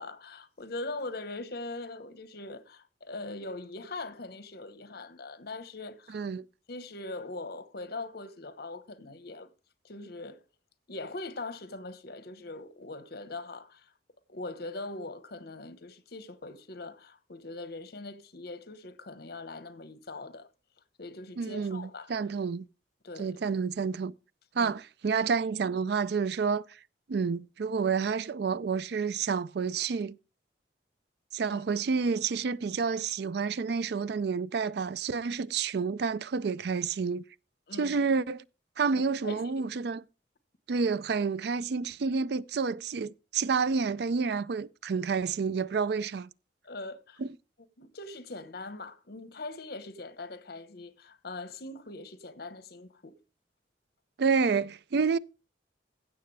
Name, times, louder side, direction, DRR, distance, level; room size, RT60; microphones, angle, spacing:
voice 1, 0.0-6.2 6.7-9.5 9.8-10.4 10.9-13.9 14.3-20.5 21.0-22.1 23.0-23.4 24.6-24.7 31.5-31.6 37.7-38.0 38.9-39.7 46.6-47.2 47.8-53.2, left 2 dB, 60° left, 1.1 m, -41 dB
voice 2, 6.1-6.4 21.4-22.6 23.2-24.1 24.6-26.6 27.1-30.2 31.3-37.2 37.7-38.4 38.8-40.0 40.7-46.3 47.2-47.3 54.2-55.2, right 5 dB, 65° right, 0.4 m, -29 dB
16.0 x 6.9 x 3.3 m
head